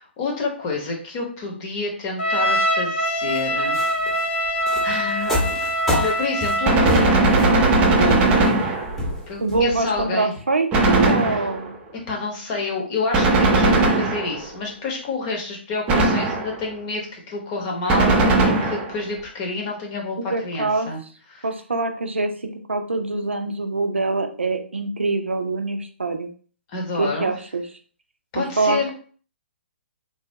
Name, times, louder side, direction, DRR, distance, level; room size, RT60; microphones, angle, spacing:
voice 1, 0.0-3.8 4.1-4.2 4.8-5.6 5.9-7.2 7.9-8.3 9.3-10.3 11.3-11.5 12.1-21.0 21.3-21.4 26.7-27.3 28.3-28.9, left 3 dB, 30° left, 0 dB, 0.9 m, -28 dB
Trumpet, 2.2-6.9, equal, 65° left, 0.8 m, -23 dB
sound 1, 3.0-10.1, left 1 dB, ahead, 0.8 m, -29 dB
Gunshot gunfire, 6.6-9.2 10.7-11.8 13.1-14.6 15.9-16.7 17.9-19.0, right 2 dB, 20° right, 0.5 m, -18 dB
voice 2, 9.4-11.8 20.3-20.9 21.4-22.3 22.7-26.3 27.0-27.6 28.4-28.9, right 3 dB, 80° right, 7 dB, 0.5 m, -24 dB
3.3 x 2.3 x 2.7 m, 0.43 s
figure-of-eight pair, 130°, 6 cm